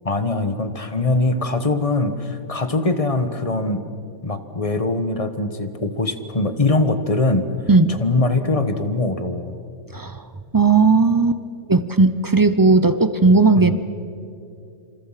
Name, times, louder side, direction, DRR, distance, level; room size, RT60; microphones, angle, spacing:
voice 1, 0.0-3.8 4.2-7.5 8.0-9.6 13.6-13.8, left 2 dB, 25° left, 9 dB, 1.3 m, -22 dB
voice 2, 7.7-8.0 9.9-10.3 10.5-11.4 11.7-13.9, right 3 dB, 30° right, 12 dB, 0.4 m, -16 dB
27.5 x 26.5 x 5.8 m, 2.6 s
omnidirectional pair, 1.5 m